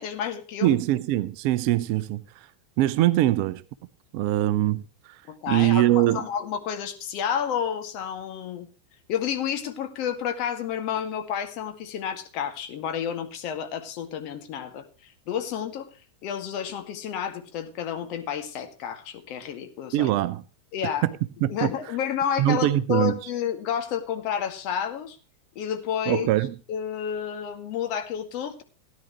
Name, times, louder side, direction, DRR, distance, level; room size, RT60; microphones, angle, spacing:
voice 1, 0.0-0.8 5.3-8.7 9.1-15.9 16.2-20.1 20.7-21.0 21.5-25.2 25.6-26.3 26.7-28.6, left 8 dB, 40° left, 1.9 m, -30 dB
voice 2, 0.6-2.5 2.8-3.6 4.1-5.2 5.5-6.3 19.9-20.4 21.0-21.1 21.4-21.7 22.4-23.2 26.1-26.6, right 14 dB, 45° right, 0.6 m, -23 dB
17.5 x 10.5 x 3.1 m
figure-of-eight pair, 90°, 0 cm